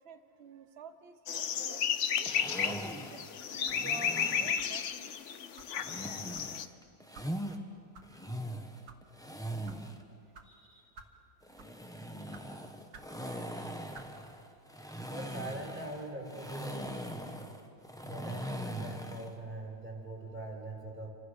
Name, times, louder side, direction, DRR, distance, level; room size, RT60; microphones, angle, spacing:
voice 1, 0.0-1.8 2.2-2.3 2.6-2.8 3.1-5.2 7.4-7.7 13.3-13.8, right 5 dB, 70° right, 9 dB, 0.5 m, -50 dB
sound 1, 1.3-6.7, left 7 dB, 55° left, 0.8 m, -33 dB
sound 2, 2.3-4.7 5.7-7.6 8.0-10.0 11.4-19.3, equal, ahead, 1.0 m, -41 dB
sound 3, 3.6-3.9 4.6-4.8 5.6-5.7 6.3-6.5 7.1-7.3 7.9-8.1 8.7-9.0 9.6-9.8 10.3-10.5 10.9-11.2 11.5-11.8 12.3-12.5 12.9-13.1 13.9-14.1, right 4 dB, 50° right, 1.8 m, -53 dB
voice 2, 10.4-10.9 15.1-17.3 18.0-21.1, right 2 dB, 20° right, 0 dB, 4.8 m, -43 dB
28.0 x 25.0 x 6.6 m, 2.7 s
omnidirectional pair, 2.2 m